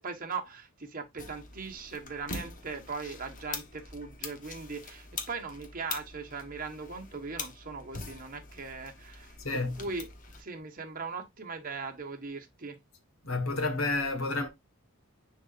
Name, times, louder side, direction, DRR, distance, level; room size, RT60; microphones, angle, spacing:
voice 1, 0.0-10.1 10.4-12.8, right 4 dB, 40° right, 1.3 m, -39 dB
sound 1, 1.2-10.4, left 4 dB, 35° left, 1.1 m, -43 dB
voice 2, 9.4-9.8 13.2-14.5, left 3 dB, 70° left, 1.6 m, -30 dB
9.8 x 3.9 x 2.5 m
head